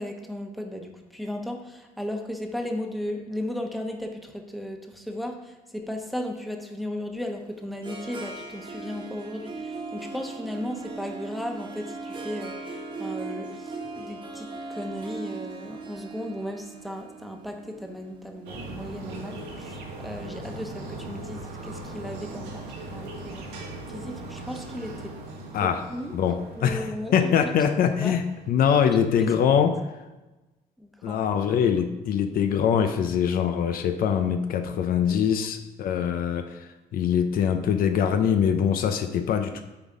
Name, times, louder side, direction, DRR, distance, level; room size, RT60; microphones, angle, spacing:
voice 1, 0.0-23.5 23.9-25.1 25.6-27.5 28.0-28.2 29.2-29.3 30.8-31.2, left 1 dB, ahead, 3 dB, 1.0 m, -36 dB
Harp, 7.2-19.3, right 3 dB, 30° right, 1.3 m, -39 dB
sound 1, 18.4-28.5, right 2 dB, 85° right, 1.7 m, -40 dB
voice 2, 25.5-25.8 26.1-29.8 31.0-39.6, left 8 dB, 60° left, 8 dB, 0.6 m, -23 dB
8.8 x 4.1 x 4.9 m, 1.1 s
cardioid pair, 110°, 17 cm